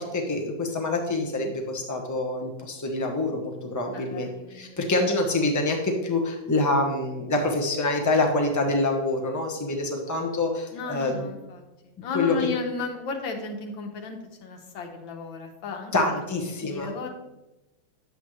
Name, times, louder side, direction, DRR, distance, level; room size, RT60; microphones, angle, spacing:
voice 1, 0.0-11.3 12.1-12.4 15.9-16.9, left 2 dB, 15° left, 1 dB, 0.5 m, -26 dB
voice 2, 3.9-4.9 10.7-15.9 16.6-17.1, left 4 dB, 80° left, 4 dB, 1.7 m, -34 dB
9.9 x 7.5 x 3.2 m, 1.0 s
omnidirectional pair, 2.1 m